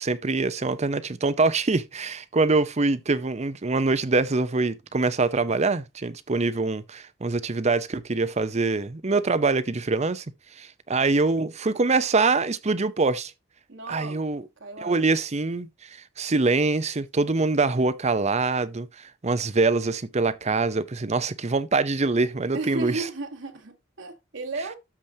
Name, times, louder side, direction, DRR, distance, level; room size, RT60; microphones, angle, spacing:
voice 1, 0.0-10.2 10.6-13.3 13.9-14.4 14.8-15.7 16.2-23.1, right 3 dB, 35° right, 0.7 m, -24 dB
voice 2, 13.7-14.2 14.6-15.1 22.5-24.8, right 2 dB, 70° right, 1.6 m, -34 dB
13.5 x 5.0 x 2.8 m
head